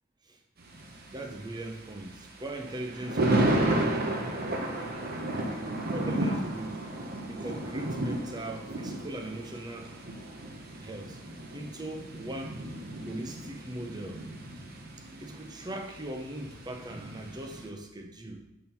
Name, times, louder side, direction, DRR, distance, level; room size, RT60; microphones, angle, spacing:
Thunder, 0.6-17.7, right 1 dB, 50° right, 0.9 m, -33 dB
voice 1, 1.1-3.6 5.9-6.8 7.3-10.0 10.8-11.2 11.5-12.6 13.1-14.2 15.2-18.4, right 1 dB, 20° right, 4 dB, 0.7 m, -39 dB
5.6 x 5.3 x 4.4 m, 0.88 s
head